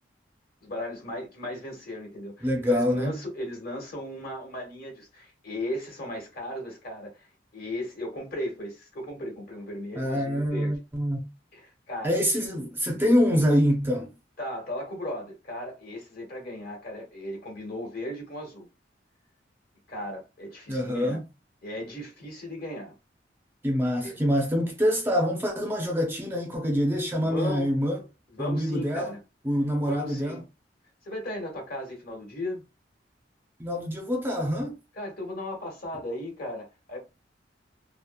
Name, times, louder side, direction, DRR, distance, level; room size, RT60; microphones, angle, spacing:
voice 1, 0.6-7.3 7.5-10.7 11.5-12.2 14.4-18.7 19.9-21.2 21.6-22.9 24.0-24.2 27.2-27.7 28.3-29.2 29.8-30.4 31.0-32.6 35.0-37.0, left 1 dB, 55° left, 1.2 m, -36 dB
voice 2, 2.4-3.2 10.0-11.3 12.0-14.1 20.7-21.2 23.6-28.0 28.4-29.1 29.4-30.4 33.6-34.8, equal, 10° right, 0.5 m, -25 dB
2.9 x 2.0 x 2.2 m
head